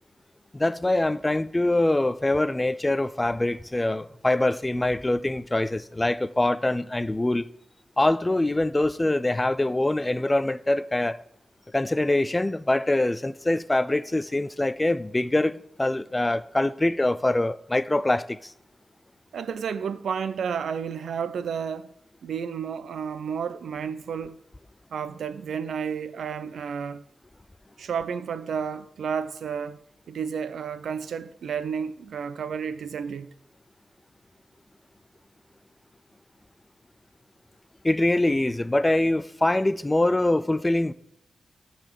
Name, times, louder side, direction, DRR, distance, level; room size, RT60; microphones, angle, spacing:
voice 1, 0.5-7.5 8.0-11.2 11.7-18.5 37.8-40.9, left 1 dB, 15° left, 0.4 m, -24 dB
voice 2, 19.3-21.9 22.2-24.4 24.9-27.0 27.8-29.8 30.1-33.3, right 7 dB, 90° right, 0.6 m, -31 dB
12.0 x 4.1 x 7.5 m
wide cardioid pair, 105°, 0 cm